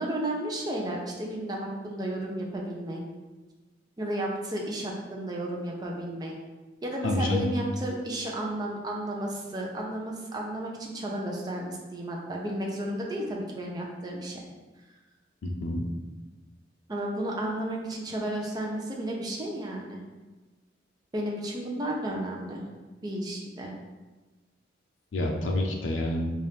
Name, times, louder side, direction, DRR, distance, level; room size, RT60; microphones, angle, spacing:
voice 1, 0.0-3.0 4.0-6.3 6.8-14.4 16.9-20.0 21.1-22.6 23.0-23.7, right 1 dB, 20° right, -2 dB, 0.6 m, -33 dB
voice 2, 7.0-7.5 15.4-15.8 25.1-26.3, left 1 dB, 85° left, 1 dB, 0.5 m, -28 dB
4.2 x 2.5 x 3.4 m, 1.2 s
head